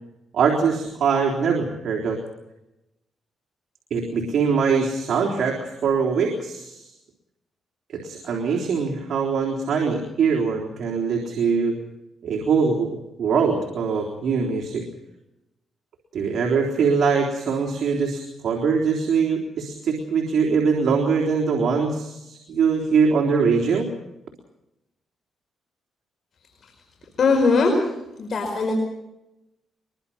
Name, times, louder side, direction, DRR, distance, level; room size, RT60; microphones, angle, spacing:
voice 1, 0.3-2.2 3.9-6.9 7.9-11.8 12.2-14.8 16.1-23.9, right 5 dB, 65° right, 0 dB, 3.7 m, -22 dB
voice 2, 27.2-27.9 28.2-28.7, left 4 dB, 45° left, 1 dB, 5.2 m, -20 dB
23.0 x 23.0 x 5.7 m, 0.91 s
cardioid pair, 105°, 0 cm